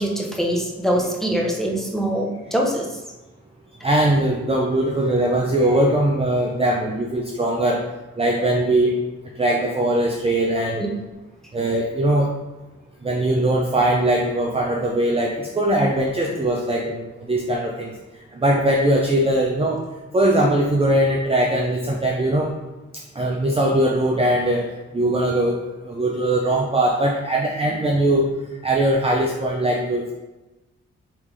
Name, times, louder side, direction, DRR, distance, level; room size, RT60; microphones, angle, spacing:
voice 1, 0.0-2.9 10.8-10.9, equal, ahead, -2 dB, 0.9 m, -23 dB
voice 2, 3.8-7.8 8.2-9.0 9.4-10.8 11.5-12.3 13.0-17.9 18.3-19.8 20.1-22.5 23.2-25.6 25.8-28.3 28.6-30.1, right 1 dB, 20° right, -1 dB, 0.5 m, -20 dB
3.4 x 3.3 x 3.2 m, 1.1 s
cardioid pair, 50°, 29 cm